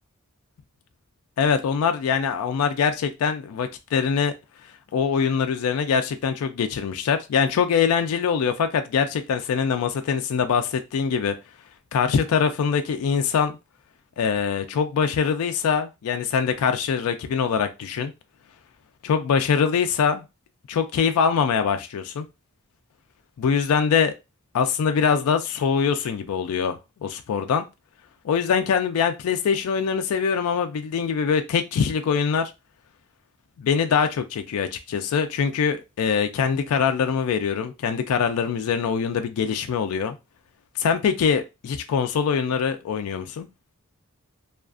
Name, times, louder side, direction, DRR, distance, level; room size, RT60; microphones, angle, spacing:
voice 1, 1.4-4.3 4.9-11.3 11.9-13.6 14.2-18.1 19.0-20.2 20.7-22.3 23.4-24.1 24.5-27.7 28.2-32.5 33.6-40.2 40.8-43.5, left 6 dB, 70° left, 0.3 m, -23 dB
2.4 x 2.3 x 2.4 m
head